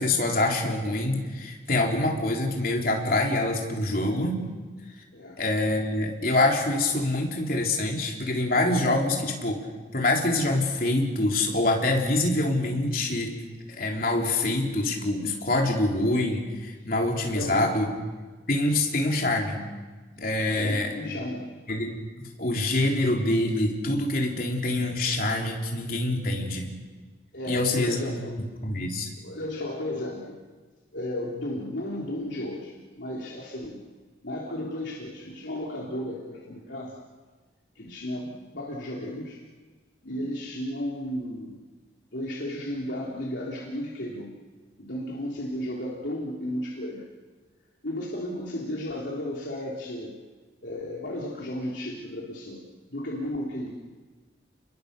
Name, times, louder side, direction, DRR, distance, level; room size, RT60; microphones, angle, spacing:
voice 1, 0.0-4.4 5.4-9.6 9.9-13.4 13.7-17.9 18.5-19.6 20.2-20.9 21.7-26.7 27.4-28.0 28.6-29.1, left 2 dB, 50° left, 0 dB, 3.7 m, -25 dB
voice 2, 17.3-17.7 20.6-21.5 27.3-28.4 29.2-30.4 30.9-33.8 34.2-37.0 37.7-39.4 40.0-41.6 42.1-44.3 44.8-47.0 47.8-50.1 50.6-52.6 52.9-53.7, left 1 dB, 85° left, -4 dB, 3.3 m, -34 dB
29.0 x 22.0 x 6.8 m, 1.4 s
head